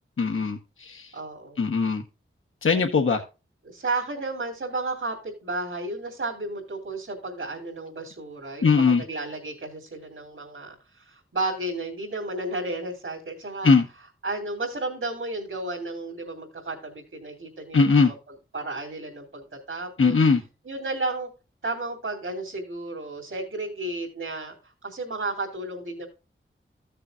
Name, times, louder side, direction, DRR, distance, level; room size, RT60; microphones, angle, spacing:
voice 1, 0.2-1.1 1.6-2.0 2.6-3.2 8.6-9.0 13.6-13.8 17.7-18.1 20.0-20.4, left 4 dB, 75° left, 3 dB, 1.1 m, -20 dB
voice 2, 1.1-1.7 3.6-13.7 14.2-18.1 18.5-20.2 20.6-21.3 21.6-24.5 24.8-26.1, right 2 dB, 75° right, -2 dB, 2.9 m, -33 dB
15.0 x 6.8 x 2.5 m, 0.30 s
cardioid pair, 40°, 21 cm